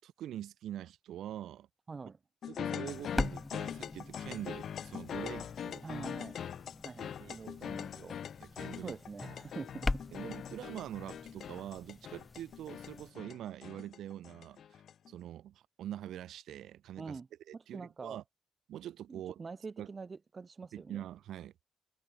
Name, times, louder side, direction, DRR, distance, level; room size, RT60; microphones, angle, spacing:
voice 1, 0.0-1.7 2.5-5.8 7.2-8.1 8.4-9.4 10.1-14.6 15.1-17.2 17.5-18.2 18.7-19.4 19.8-19.9 20.7-21.5, right 11 dB, 80° right, 6.1 m, -44 dB
voice 2, 1.9-2.2 5.8-6.5 6.8-8.2 8.8-10.0 17.0-17.3 17.5-18.2 19.1-21.0, right 4 dB, 35° right, 2.3 m, -45 dB
sound 1, 2.4-15.1, left 9 dB, 65° left, 0.7 m, -42 dB
sound 2, 2.9-13.1, left 2 dB, 20° left, 0.8 m, -42 dB
cardioid pair, 80°, 0 cm